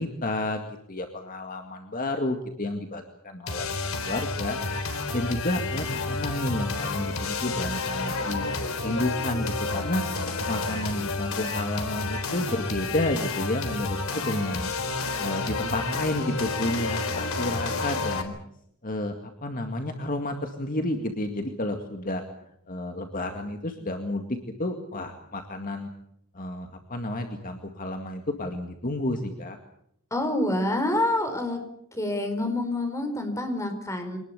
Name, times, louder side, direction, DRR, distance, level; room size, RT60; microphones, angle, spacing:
voice 1, 0.0-4.6 5.1-8.5 8.8-10.0 10.5-14.7 15.2-18.3 18.8-19.2 19.4-22.2 22.7-25.9 26.3-29.6, left 1 dB, 40° left, 5 dB, 2.1 m, -31 dB
sound 1, 3.5-18.2, left 3 dB, 65° left, 3.8 m, -30 dB
voice 2, 30.1-31.6 31.9-34.2, left 1 dB, 15° left, 6 dB, 4.6 m, -27 dB
25.0 x 19.5 x 8.3 m, 0.74 s
head